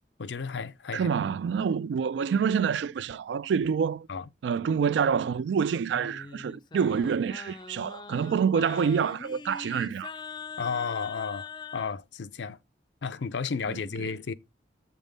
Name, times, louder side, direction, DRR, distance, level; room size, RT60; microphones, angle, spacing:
voice 1, 0.2-1.1 4.1-4.2 10.6-12.6 13.0-14.3, left 5 dB, 80° left, 0.6 m, -33 dB
voice 2, 0.9-4.1 4.4-10.1 13.7-14.1, right 6 dB, 75° right, 0.3 m, -27 dB
Singing, 5.9-11.9, left 5 dB, 25° left, 0.3 m, -42 dB
8.0 x 3.6 x 5.1 m
head